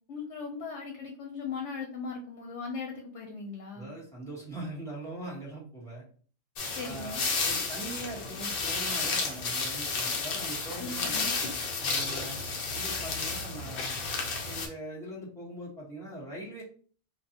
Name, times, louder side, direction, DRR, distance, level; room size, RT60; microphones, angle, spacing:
voice 1, 0.1-3.9 6.7-7.2 10.8-11.3, left 5 dB, 85° left, 0 dB, 0.9 m, -38 dB
voice 2, 3.7-6.0 6.8-11.3 11.8-12.4 12.7-13.9 14.4-16.6, right 1 dB, 5° left, -7 dB, 0.9 m, -41 dB
sound 1, 6.6-14.7, left 4 dB, 60° left, 0.8 m, -32 dB
2.5 x 2.4 x 2.7 m, 0.43 s
omnidirectional pair, 1.2 m